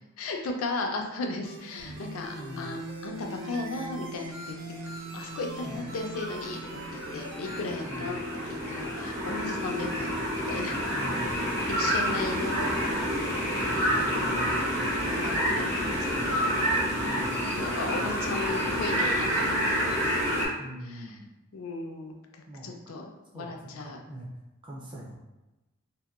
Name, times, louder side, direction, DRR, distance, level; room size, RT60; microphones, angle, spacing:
voice 1, 0.2-4.6 5.1-10.2 10.5-10.8 11.7-12.7 13.0-14.1 14.4-14.6 15.2-15.6 15.9-16.5 17.6-20.0 20.9-21.0 21.5-22.2 22.6-23.0 23.3-24.0, left 3 dB, 85° left, 2 dB, 0.4 m, -36 dB
sound 1, 1.4-7.7, right 2 dB, 55° right, 0.7 m, -45 dB
sound 2, 1.8-8.4, right 2 dB, 90° right, 0.4 m, -43 dB
voice 2, 2.3-2.7 5.6-5.9 7.8-8.1 10.9-11.6 14.0-14.5 17.0-17.5 20.6-21.3 22.5-22.7 23.3-24.3 24.6-25.2, right 1 dB, 25° right, -3 dB, 0.4 m, -42 dB
sound 3, 5.4-20.5, equal, 70° right, 1.1 m, -29 dB
2.7 x 2.1 x 2.3 m, 1.0 s
head